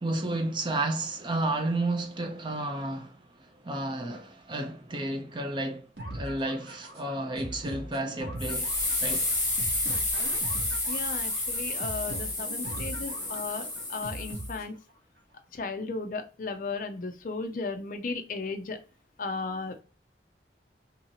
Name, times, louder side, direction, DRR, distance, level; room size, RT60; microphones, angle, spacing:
voice 1, 0.0-5.9 6.1-8.7 9.0-9.3, right 2 dB, 25° right, 0.5 m, -32 dB
sound 1, 6.0-15.0, right 1 dB, 70° right, 1.0 m, -41 dB
sound 2, 8.4-14.6, left 2 dB, 15° left, 1.4 m, -30 dB
voice 2, 10.9-14.7 15.5-18.8 19.2-19.8, left 3 dB, 45° left, 0.5 m, -35 dB
2.7 x 2.7 x 2.8 m
head